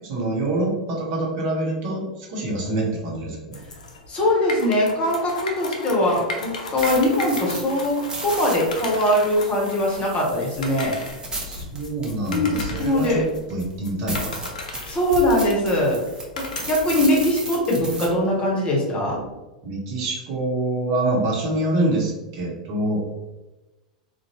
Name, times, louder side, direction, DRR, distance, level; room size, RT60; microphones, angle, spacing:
voice 1, 0.0-3.6 11.0-11.1 11.4-13.2 13.5-14.4 19.6-23.0, right 2 dB, 50° right, -1 dB, 0.8 m, -26 dB
sound 1, 3.5-17.0, left 2 dB, 75° left, 0.5 m, -35 dB
voice 2, 4.1-10.9 12.3-13.2 14.9-16.0 16.7-19.2, left 1 dB, 30° left, -2 dB, 0.9 m, -21 dB
sound 2, 6.5-13.3 13.7-13.8 14.1-18.1, right 2 dB, 20° right, 0.7 m, -35 dB
2.6 x 2.1 x 3.0 m, 1.1 s
figure-of-eight pair, 90°, 4 cm